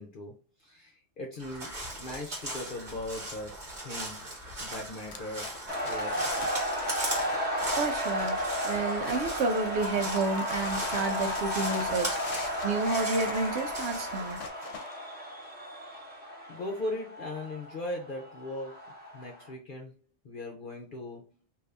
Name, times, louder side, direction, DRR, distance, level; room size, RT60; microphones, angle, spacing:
voice 1, 0.0-3.5 3.8-4.3 4.6-5.6 5.9-6.3 16.5-20.0 20.2-21.3, left 1 dB, 50° left, 0.7 m, -39 dB
Crow, 1.4-14.5, right 1 dB, 40° right, 1.3 m, -39 dB
sound 1, 5.0-9.6 9.9-15.0, left 6 dB, 80° left, 0.9 m, -45 dB
sound 2, 5.7-19.5, equal, 10° right, 0.9 m, -33 dB
voice 2, 7.8-14.4, right 3 dB, 65° right, 0.9 m, -31 dB
2.7 x 2.6 x 3.3 m
omnidirectional pair, 1.3 m